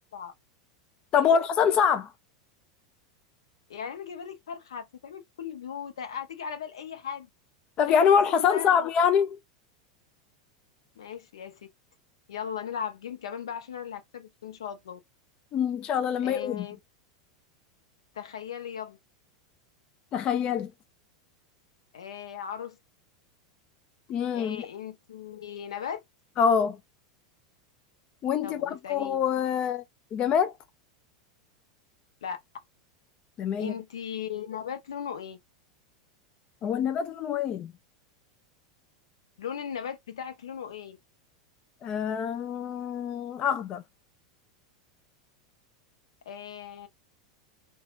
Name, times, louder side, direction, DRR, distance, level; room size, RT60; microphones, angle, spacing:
voice 1, 1.1-2.1 7.8-9.4 15.5-16.7 20.1-20.7 24.1-24.7 26.4-26.8 28.2-29.8 30.1-30.5 33.4-33.7 36.6-37.7 41.8-43.8, left 7 dB, 35° left, 0.4 m, -25 dB
voice 2, 3.7-7.3 7.9-8.0 8.3-8.9 11.0-11.7 12.3-15.0 16.2-16.8 18.1-19.0 21.9-22.8 24.3-26.0 28.4-29.2 32.2-32.4 33.6-35.4 39.4-41.0 46.3-46.9, left 8 dB, 70° left, 0.7 m, -37 dB
4.1 x 2.3 x 2.5 m
figure-of-eight pair, 85°, 3 cm